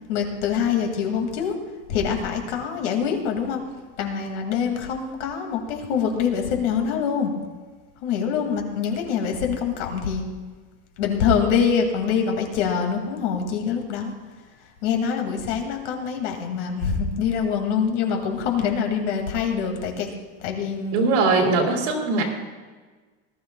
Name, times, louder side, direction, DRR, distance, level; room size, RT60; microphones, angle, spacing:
voice 1, 0.1-1.5 1.9-3.6 4.0-7.3 8.0-10.3 11.0-14.1 14.8-20.1 20.4-21.1 22.2-22.3, left 7 dB, 75° left, 3 dB, 2.4 m, -24 dB
voice 2, 20.9-22.2, right 3 dB, 80° right, 0 dB, 3.3 m, -20 dB
19.0 x 13.0 x 2.3 m, 1.4 s
cardioid pair, 175°, 36 cm